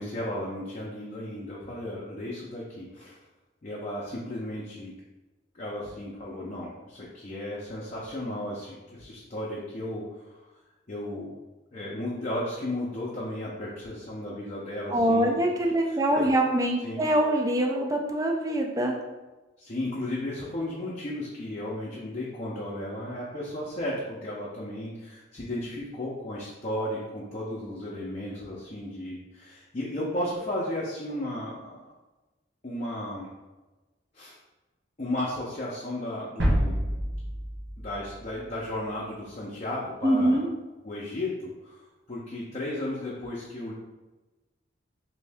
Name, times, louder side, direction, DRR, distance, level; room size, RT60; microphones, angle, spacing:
voice 1, 0.0-3.2 3.6-4.9 5.5-10.4 10.9-11.3 11.7-15.4 15.8-16.3 16.8-17.1 19.6-31.8 32.6-33.3 34.1-34.4 35.0-36.8 37.8-40.4 40.8-41.8 42.1-43.7, left 1 dB, 35° left, -5 dB, 0.5 m, -34 dB
voice 2, 14.9-19.0 40.0-40.5, right 1 dB, 20° right, 2 dB, 0.4 m, -24 dB
sound 1, 36.4-38.9, equal, 65° right, 0.8 m, -28 dB
3.1 x 2.7 x 3.4 m, 1.2 s
head